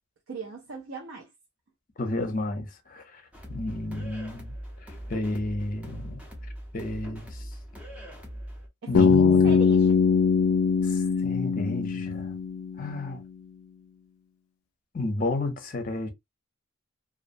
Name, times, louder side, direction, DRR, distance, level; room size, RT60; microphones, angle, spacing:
voice 1, 0.3-1.3 8.8-10.0, right 4 dB, 75° right, 0.6 m, -39 dB
voice 2, 2.0-3.2 3.5-4.5 5.1-6.2 6.7-7.4 8.9-9.6 10.8-12.3 12.8-13.2 14.9-16.1, left 2 dB, 40° left, 0.6 m, -31 dB
sound 1, 3.3-8.7, equal, 5° right, 0.6 m, -41 dB
Bass guitar, 8.9-12.9, left 5 dB, 85° left, 0.3 m, -22 dB
2.5 x 2.0 x 2.5 m
head